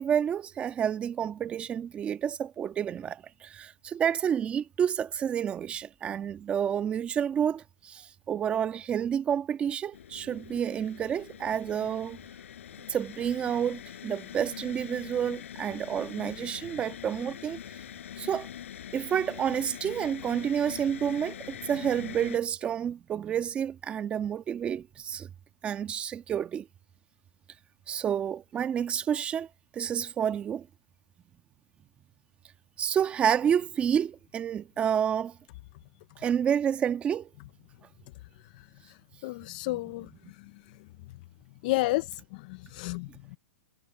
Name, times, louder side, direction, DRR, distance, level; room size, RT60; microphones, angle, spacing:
voice 1, 0.0-12.2 12.9-17.6 18.2-18.5 18.9-25.3 25.6-26.7 27.9-29.5 29.7-30.7 32.8-35.4 36.2-37.3 39.7-39.8, right 8 dB, 15° right, 1.4 m, -29 dB
sound 1, 9.9-22.4, left 10 dB, 70° left, 6.3 m, -43 dB
voice 2, 39.2-40.1 41.6-43.4, left 20 dB, 40° left, 0.5 m, -31 dB
hypercardioid pair, 155°, 7 cm